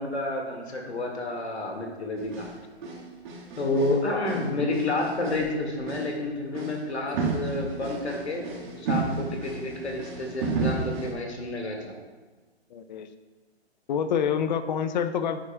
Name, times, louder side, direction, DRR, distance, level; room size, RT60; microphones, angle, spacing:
voice 1, 0.0-2.5 3.6-12.0, left 2 dB, 80° left, 1 dB, 1.9 m, -30 dB
sound 1, 2.2-2.6 2.8-4.0 4.2-5.5 5.8-6.1 6.5-6.8 7.1-11.1, right 4 dB, 45° right, 1.7 m, -32 dB
voice 2, 12.7-13.1 13.9-15.4, left 7 dB, 45° left, 10 dB, 0.6 m, -27 dB
9.8 x 8.4 x 2.2 m, 1.3 s
figure-of-eight pair, 125°, 33 cm